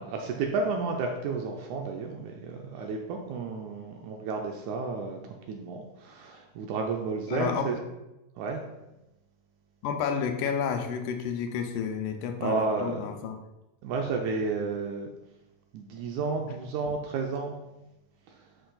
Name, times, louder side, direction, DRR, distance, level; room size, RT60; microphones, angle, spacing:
voice 1, 0.0-5.2 5.5-7.8 8.4-8.6 12.4-13.1 13.8-15.1 15.7-17.5, right 4 dB, 80° right, 2 dB, 1.8 m, -31 dB
voice 2, 7.3-7.7 9.8-13.4, left 7 dB, 85° left, 5 dB, 2.2 m, -30 dB
10.0 x 4.7 x 2.3 m, 0.96 s
omnidirectional pair, 3.8 m